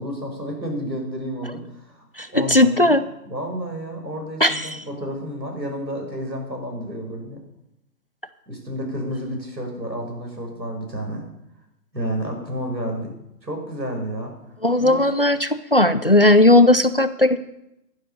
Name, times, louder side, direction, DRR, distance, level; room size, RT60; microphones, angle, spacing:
voice 1, 0.0-2.0 2.3-3.0 3.3-7.4 8.5-11.2 11.9-13.1 13.4-14.3 14.8-15.0, equal, 90° right, 2 dB, 5.7 m, -30 dB
voice 2, 2.2-3.0 4.4-4.8 14.6-17.4, left 1 dB, 35° left, 14 dB, 0.4 m, -16 dB
12.0 x 10.0 x 6.9 m, 0.86 s
figure-of-eight pair, 140°, 49 cm